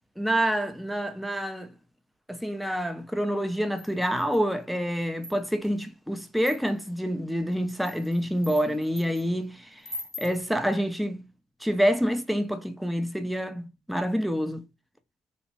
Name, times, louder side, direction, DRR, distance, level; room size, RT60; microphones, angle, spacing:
voice 1, 0.2-1.7 2.3-9.8 10.2-11.2 11.6-14.6, equal, ahead, 0.4 m, -27 dB
sound 1, 3.8-4.5 5.0-5.7 6.4-6.9 7.5-9.2 9.8-10.4, left 2 dB, 15° left, 0.9 m, -42 dB
2.9 x 2.1 x 2.8 m
supercardioid pair, 70°, 15 cm